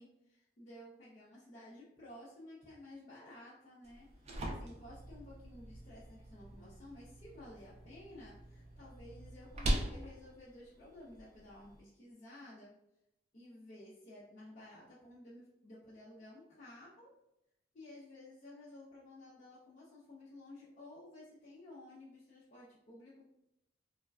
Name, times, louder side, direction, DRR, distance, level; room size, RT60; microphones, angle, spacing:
voice 1, 0.0-12.7 13.3-17.1 17.7-23.3, left 1 dB, 40° left, -9 dB, 0.6 m, -54 dB
sound 1, 3.8-11.8, right 1 dB, 35° right, 0.3 m, -42 dB
3.2 x 2.1 x 2.3 m, 0.86 s
head